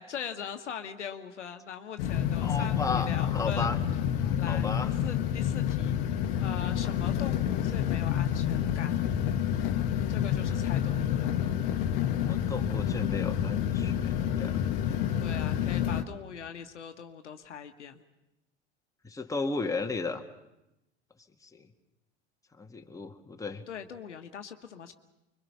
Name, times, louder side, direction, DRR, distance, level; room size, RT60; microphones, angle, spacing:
voice 1, 0.0-3.7 4.4-6.0 6.4-9.0 10.1-11.4 15.2-18.0 23.7-24.9, left 8 dB, 80° left, 7 dB, 1.4 m, -41 dB
sound 1, 2.0-16.0, left 9 dB, 55° left, 1.3 m, -28 dB
voice 2, 2.4-3.8 4.5-4.9 12.2-14.6 19.0-20.2 21.4-21.7 22.6-23.6, left 4 dB, 10° left, 3 dB, 1.8 m, -34 dB
25.5 x 23.0 x 5.8 m, 0.90 s
figure-of-eight pair, 80°, 35 cm